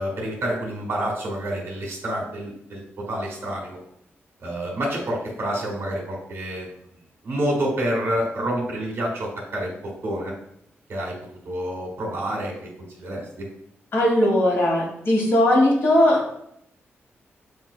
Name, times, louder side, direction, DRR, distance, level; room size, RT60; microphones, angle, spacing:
voice 1, 0.0-3.8 4.4-6.7 7.2-10.3 10.9-11.1 11.4-12.5 13.0-13.4, right 1 dB, 65° right, -1 dB, 1.6 m, -28 dB
voice 2, 13.9-16.3, left 1 dB, 60° left, -2 dB, 1.5 m, -19 dB
7.3 x 2.7 x 2.2 m, 0.75 s
wide cardioid pair, 120°, 5 cm